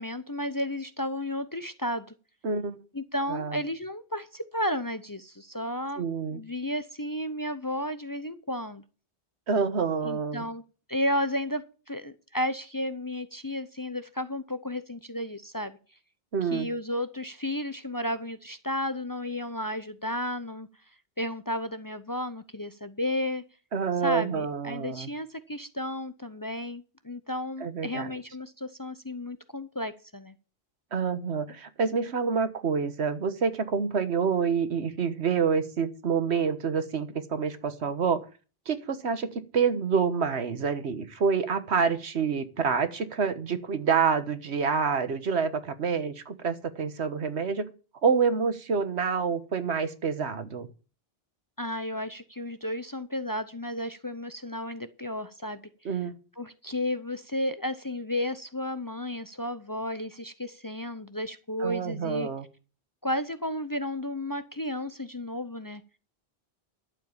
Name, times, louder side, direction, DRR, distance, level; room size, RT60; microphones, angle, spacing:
voice 1, 0.0-2.2 2.9-6.0 6.3-8.8 10.0-10.6 10.9-15.8 16.4-20.7 21.2-23.4 24.0-30.3 51.6-55.9 56.4-62.3 63.0-65.8, left 1 dB, 25° left, 12 dB, 0.6 m, -33 dB
voice 2, 2.4-2.8 3.3-3.6 6.0-6.4 9.5-10.4 16.3-16.7 23.7-25.1 27.6-28.1 30.9-38.2 38.7-47.7 48.0-50.7 55.8-56.1 61.6-62.5, right 5 dB, 85° right, 11 dB, 1.6 m, -27 dB
11.5 x 7.6 x 7.1 m, 0.36 s
omnidirectional pair, 1.1 m